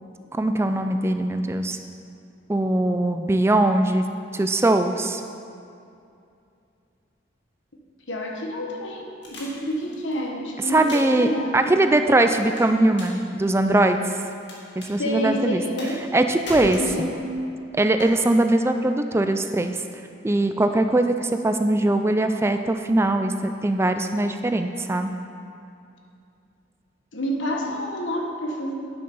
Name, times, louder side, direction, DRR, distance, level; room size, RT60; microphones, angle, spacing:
voice 1, 0.3-1.8 2.5-4.1 4.3-5.2 10.7-14.2 14.8-15.6 16.1-17.1 17.7-19.8 20.2-25.1, right 2 dB, 15° right, 7 dB, 0.3 m, -21 dB
voice 2, 8.1-11.6 15.0-16.0 16.6-17.1 27.1-28.7, equal, 85° left, 1 dB, 1.4 m, -28 dB
sound 1, 9.2-10.1 10.7-11.2 12.6-13.2 13.5-14.5 14.8-14.9 15.8-16.2 16.5-17.3 18.0-18.1, left 1 dB, 70° left, 2.1 m, -37 dB
9.3 x 7.5 x 5.5 m, 2.5 s
head